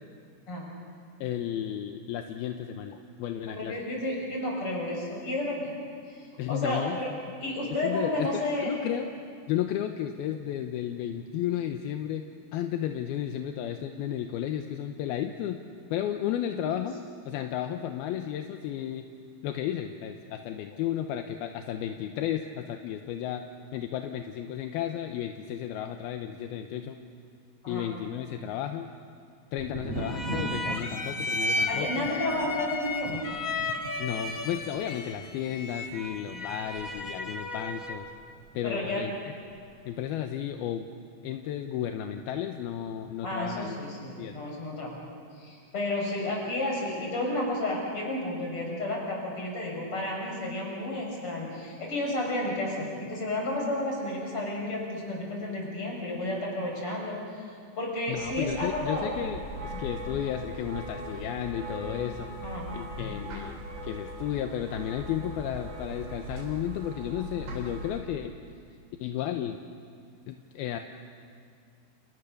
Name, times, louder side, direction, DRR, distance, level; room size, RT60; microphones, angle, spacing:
voice 1, 1.2-3.7 6.4-7.2 7.8-9.1 9.5-12.2 12.5-15.6 15.9-17.0 17.3-19.1 19.4-23.4 23.7-27.0 27.7-28.9 29.5-32.1 34.0-38.1 38.5-39.1 39.9-40.9 41.2-43.8 44.2-44.3 58.1-62.4 62.7-68.4 69.0-69.6 70.3-70.8, left 10 dB, 75° left, 6 dB, 2.6 m, -33 dB
voice 2, 3.5-5.7 6.1-7.1 7.4-8.7 16.7-16.9 27.6-27.9 31.7-33.2 38.6-39.1 43.2-45.0 45.4-57.4 57.8-59.2 62.4-62.7, left 1 dB, 30° left, -1 dB, 7.1 m, -32 dB
Thunder, 29.6-39.2 39.5-40.2, right 2 dB, 45° right, 3.6 m, -41 dB
sound 1, 30.0-38.1, left 2 dB, 50° left, 1.0 m, -34 dB
sound 2, 58.1-68.0, right 1 dB, 75° right, 5.5 m, -40 dB
30.0 x 29.5 x 6.7 m, 2.3 s
omnidirectional pair, 5.0 m